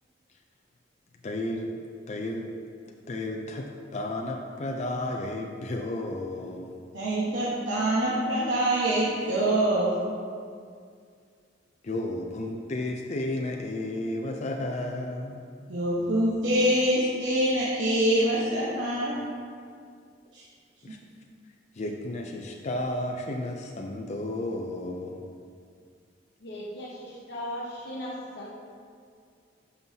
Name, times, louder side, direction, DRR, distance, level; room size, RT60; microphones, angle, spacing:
voice 1, 1.2-1.8 2.1-2.5 3.1-6.7 11.8-15.4 20.8-21.0 21.7-25.2, left 1 dB, 40° left, 1 dB, 0.5 m, -32 dB
voice 2, 6.9-9.9 15.7-19.2 20.3-20.4, right 1 dB, 80° right, -7 dB, 1.1 m, -25 dB
voice 3, 26.4-28.5, equal, 65° left, -4 dB, 0.9 m, -37 dB
11.5 x 5.5 x 2.8 m, 2.2 s
head